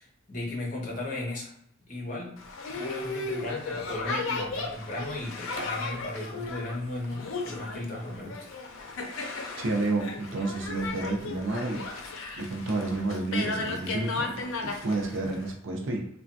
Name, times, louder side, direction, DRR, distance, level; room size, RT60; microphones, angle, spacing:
voice 1, 0.0-1.5 1.8-2.4 2.7-8.6, left 2 dB, 40° left, -1 dB, 0.8 m, -36 dB
Boat Water vehicle, 2.4-15.5, left 3 dB, 90° left, 0.5 m, -35 dB
voice 2, 9.6-11.9 12.4-16.1, right 2 dB, 80° right, 2 dB, 0.5 m, -30 dB
3.2 x 2.2 x 2.6 m, 0.72 s
head